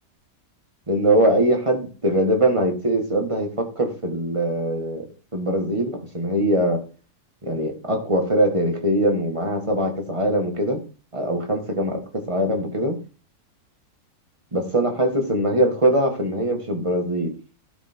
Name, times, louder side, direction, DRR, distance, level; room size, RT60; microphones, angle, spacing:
voice 1, 0.9-5.0 5.3-6.8 7.4-10.8 11.1-12.9 14.5-17.3, right 1 dB, 20° right, 2 dB, 1.7 m, -22 dB
11.5 x 5.0 x 4.4 m, 0.36 s
omnidirectional pair, 1.7 m